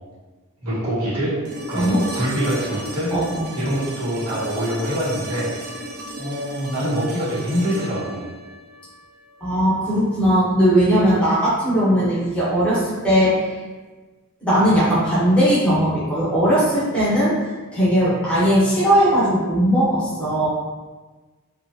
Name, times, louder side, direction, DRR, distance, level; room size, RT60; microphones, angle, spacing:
voice 1, 0.6-1.3 1.7-3.1 3.5-5.5 5.8-8.3, equal, 85° right, -9 dB, 1.3 m, -25 dB
sound 1, 1.4-9.5 11.6-11.7, right 1 dB, 45° right, 0.4 m, -35 dB
voice 2, 3.1-3.5 9.4-13.5 14.4-17.3 17.7-20.5, equal, 5° left, -10 dB, 0.8 m, -18 dB
2.9 x 2.4 x 2.6 m, 1.3 s
head